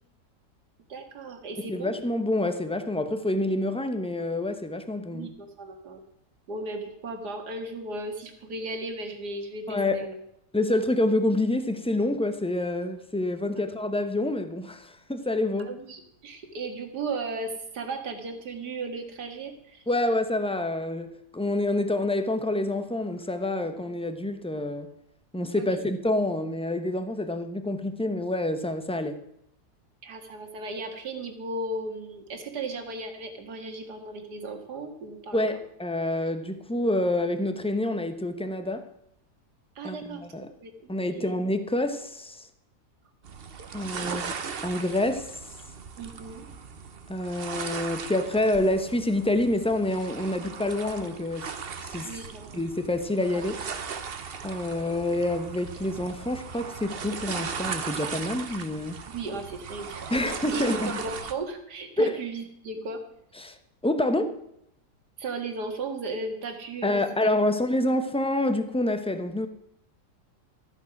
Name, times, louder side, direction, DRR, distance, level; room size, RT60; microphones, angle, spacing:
voice 1, 0.9-1.9 5.1-6.0 6.5-10.1 13.6-13.7 15.6-19.8 23.6-23.8 25.6-25.8 30.0-35.4 39.8-40.3 40.6-40.7 41.1-41.3 44.0-44.3 46.0-46.5 52.0-52.6 53.3-53.5 59.1-63.0 65.2-67.3, right 2 dB, 70° right, 2.3 m, -36 dB
voice 2, 1.6-5.3 9.7-10.1 10.5-15.7 19.9-24.9 25.3-29.2 35.3-38.9 39.8-40.5 40.9-42.5 43.7-44.2 44.6-45.3 47.1-51.5 51.9-52.1 52.5-53.5 54.4-59.0 60.1-60.9 62.0-62.2 63.4-63.6 63.8-64.4 66.8-69.5, left 1 dB, 5° left, 0.5 m, -27 dB
sound 1, 43.2-61.3, right 6 dB, 45° right, 0.9 m, -38 dB
14.0 x 9.2 x 5.9 m
omnidirectional pair, 1.8 m